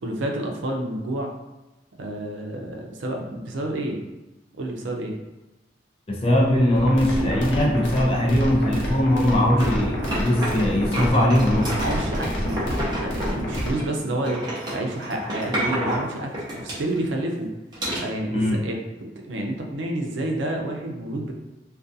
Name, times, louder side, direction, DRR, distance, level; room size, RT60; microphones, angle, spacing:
voice 1, 0.0-1.3 1.9-4.0 4.6-5.1 11.7-14.4 14.7-17.5 18.0-21.3, right 1 dB, 80° right, 1 dB, 0.5 m, -29 dB
voice 2, 6.1-11.8 18.3-18.6, left 1 dB, 30° left, -2 dB, 0.4 m, -20 dB
sound 1, 6.8-13.8, equal, 70° left, 0.7 m, -28 dB
sound 2, 9.6-10.7 10.9-13.9 14.2-17.2 17.7-18.0, right 1 dB, 25° right, 0.7 m, -30 dB
2.4 x 2.3 x 2.6 m, 1.0 s
head